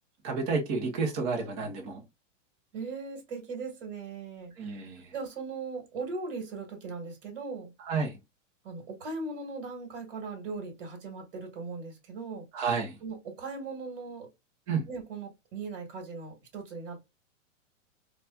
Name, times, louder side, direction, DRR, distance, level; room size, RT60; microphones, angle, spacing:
voice 1, 0.2-2.0 4.6-5.1 7.9-8.2 12.5-13.0 14.7-14.9, right 4 dB, 20° right, 0.6 m, -30 dB
voice 2, 2.7-4.8 5.1-7.7 8.6-12.4 13.0-14.3 14.9-17.0, right 4 dB, 50° right, 1.5 m, -39 dB
4.0 x 2.3 x 2.2 m
supercardioid pair, 165°, 38 cm